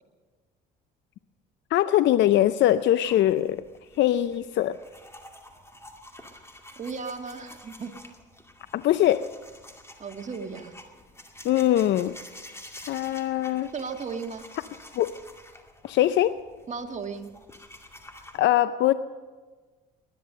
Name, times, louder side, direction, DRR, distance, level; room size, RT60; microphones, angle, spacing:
voice 1, 1.7-3.6 4.0-4.8 8.7-9.3 11.4-12.1 12.8-13.7 14.9-15.1 15.8-16.3 18.3-18.9, left 13 dB, 60° left, 14 dB, 0.6 m, -22 dB
sound 1, 3.0-18.4, left 1 dB, 10° left, 2.2 m, -49 dB
voice 2, 6.8-7.9 10.0-10.7 13.7-14.5 16.7-17.3, right 5 dB, 35° right, 5 dB, 1.8 m, -35 dB
20.0 x 11.0 x 6.7 m, 1.4 s
supercardioid pair, 70°, 21 cm